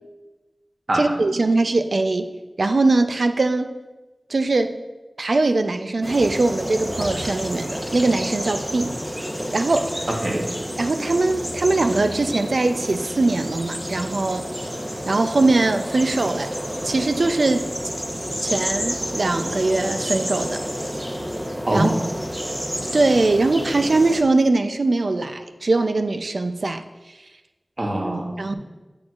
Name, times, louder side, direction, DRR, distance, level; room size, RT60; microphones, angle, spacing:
voice 1, 0.9-2.3 2.6-3.7 4.3-4.8 5.2-8.9 9.5-10.1 10.8-14.4 15.1-16.5 16.8-17.7 18.4-21.0 21.7-21.9 22.9-26.8 28.4-28.5, right 2 dB, 80° right, 8 dB, 0.5 m, -21 dB
sound 1, 6.0-24.2, equal, 15° right, 0.9 m, -30 dB
voice 2, 10.1-10.5 20.0-20.1 21.7-22.0 27.8-28.5, right 1 dB, 50° right, 1 dB, 1.2 m, -24 dB
8.5 x 7.7 x 2.4 m, 1.1 s
wide cardioid pair, 60°, 0 cm